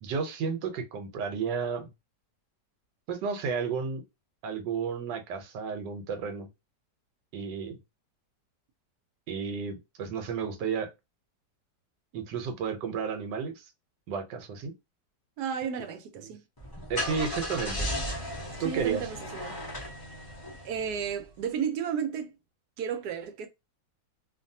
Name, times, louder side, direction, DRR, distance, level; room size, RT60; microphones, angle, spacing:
voice 1, 0.0-1.9 3.1-4.0 4.4-6.5 7.3-7.8 9.3-10.9 12.1-13.6 14.1-14.7 16.9-17.9 18.6-19.1, right 6 dB, 90° right, 1.3 m, -32 dB
voice 2, 15.4-16.4 18.6-19.6 20.6-22.3 22.8-23.5, right 7 dB, 70° right, 1.1 m, -33 dB
Car / Engine starting, 16.6-21.2, equal, 25° left, 0.4 m, -35 dB
2.6 x 2.6 x 2.6 m
omnidirectional pair, 1.9 m